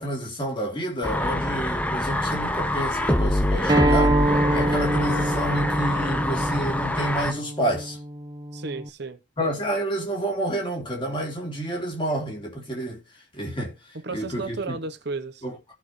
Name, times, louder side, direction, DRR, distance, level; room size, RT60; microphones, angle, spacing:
voice 1, 0.0-8.0 9.4-13.0 13.3-14.8 15.4-15.7, right 1 dB, 25° left, 3.1 m, -29 dB
sound 1, 1.0-7.3, left 1 dB, 5° left, 0.8 m, -25 dB
Acoustic guitar, 3.7-8.9, right 1 dB, 20° right, 1.3 m, -25 dB
voice 2, 8.5-9.2 14.0-15.4, right 3 dB, 55° right, 0.9 m, -33 dB
16.5 x 5.7 x 3.1 m
head